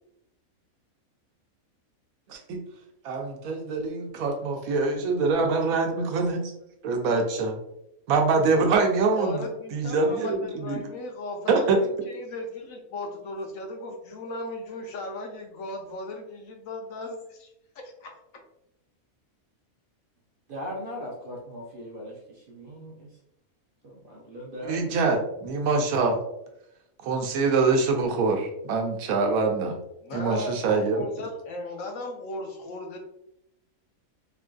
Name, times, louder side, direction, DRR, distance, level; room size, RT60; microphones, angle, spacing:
voice 1, 2.3-2.6 3.0-6.5 6.8-7.6 8.1-9.4 9.7-10.8 11.5-11.8 24.7-26.2 27.0-29.8 30.1-31.0, right 4 dB, 75° right, 3 dB, 1.0 m, -24 dB
voice 2, 9.1-17.5 18.0-18.1 30.0-33.0, left 2 dB, 70° left, 2 dB, 0.9 m, -36 dB
voice 3, 20.5-23.1 23.8-25.1, equal, 60° right, -2 dB, 0.5 m, -39 dB
3.6 x 2.5 x 2.2 m, 0.82 s
omnidirectional pair, 1.5 m